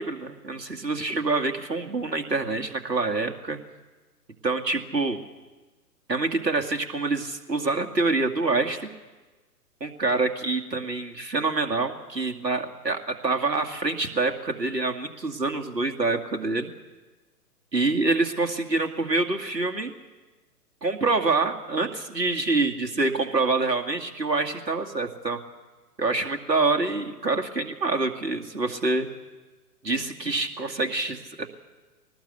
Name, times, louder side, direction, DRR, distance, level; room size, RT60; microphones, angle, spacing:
voice 1, 0.0-3.6 4.4-5.2 6.1-8.9 9.8-16.7 17.7-19.9 20.8-25.4 26.0-29.1 29.8-31.4, right 3 dB, 85° right, 4 dB, 2.4 m, -26 dB
22.5 x 19.0 x 8.2 m, 1.2 s
figure-of-eight pair, 125°, 49 cm